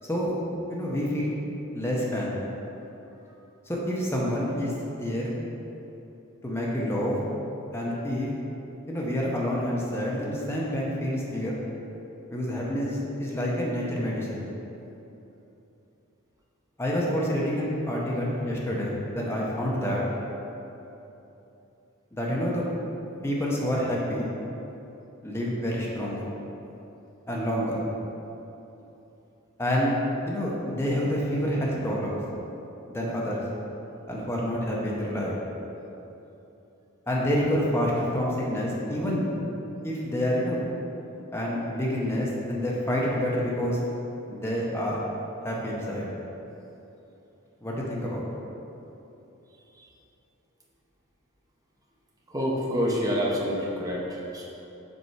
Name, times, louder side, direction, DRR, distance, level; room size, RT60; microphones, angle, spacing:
voice 1, 0.0-0.4 0.7-1.3 1.7-2.4 3.7-5.3 6.4-7.2 7.7-8.3 8.9-11.5 12.3-14.4 16.8-20.0 22.1-22.6 23.2-24.3 25.2-26.2 27.3-27.8 29.6-29.9 30.3-32.2 32.9-33.4 34.1-35.3 37.1-39.3 39.8-40.7 41.3-43.8 44.3-45.0 45.4-46.1 47.6-48.2, equal, 10° left, -4 dB, 0.8 m, -28 dB
voice 2, 52.3-54.5, equal, 15° right, -4 dB, 0.8 m, -27 dB
5.3 x 4.5 x 4.6 m, 3.0 s
head